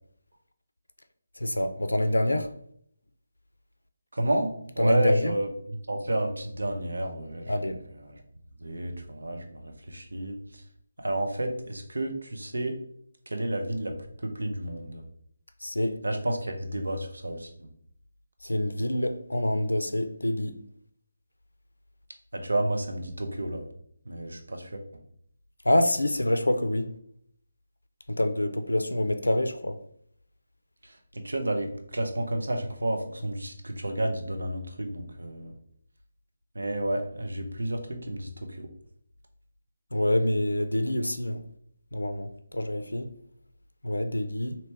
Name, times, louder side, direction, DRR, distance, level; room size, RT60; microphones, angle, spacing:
voice 1, 1.4-2.5 4.8-5.3 7.5-7.8 15.6-16.0 18.4-20.5 25.7-26.9 28.1-29.8 39.9-41.4 41.9-42.3 42.5-43.1 43.8-44.6, left 1 dB, 75° left, 0.4 m, -26 dB
voice 2, 4.1-7.5 8.0-8.2 8.6-10.4 11.0-12.7 13.3-13.9 14.2-15.0 16.0-17.7 22.3-23.7 24.1-24.8 31.1-35.5 36.5-38.7, right 1 dB, 70° right, 0.7 m, -31 dB
2.9 x 2.8 x 3.3 m
figure-of-eight pair, 150°, 0 cm